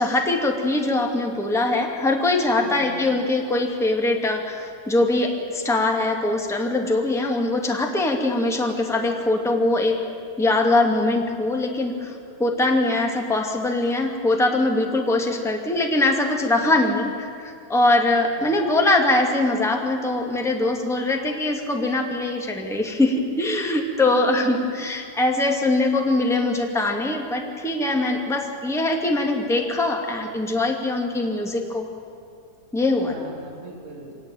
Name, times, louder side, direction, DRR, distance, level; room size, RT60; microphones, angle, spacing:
voice 1, 0.0-10.0 10.4-31.9 32.7-33.1, left 2 dB, ahead, 2 dB, 1.6 m, -22 dB
voice 2, 2.6-3.1 18.4-18.7 24.1-24.5 33.0-34.2, right 3 dB, 80° right, 1 dB, 5.7 m, -39 dB
24.5 x 18.0 x 9.1 m, 2.5 s
omnidirectional pair, 3.8 m